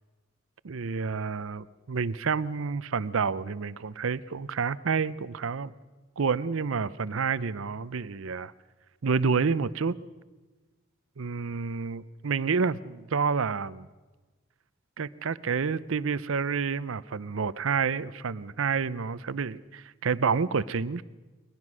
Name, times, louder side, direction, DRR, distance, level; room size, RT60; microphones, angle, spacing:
voice 1, 0.6-5.7 6.2-8.5 9.0-9.9 11.2-13.9 15.0-21.0, right 5 dB, 70° right, 17 dB, 0.6 m, -29 dB
22.0 x 20.5 x 6.2 m, 1.2 s
head